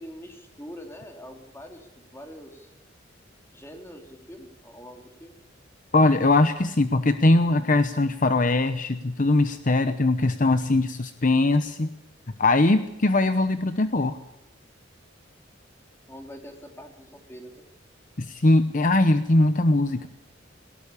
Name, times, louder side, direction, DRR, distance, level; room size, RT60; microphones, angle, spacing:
voice 1, 0.0-2.7 3.5-5.4 16.1-17.6, equal, 15° left, 3 dB, 3.3 m, -44 dB
voice 2, 5.9-11.9 12.4-14.2 18.2-20.1, left 2 dB, 45° left, 10 dB, 0.9 m, -21 dB
18.5 x 18.5 x 8.6 m, 0.87 s
head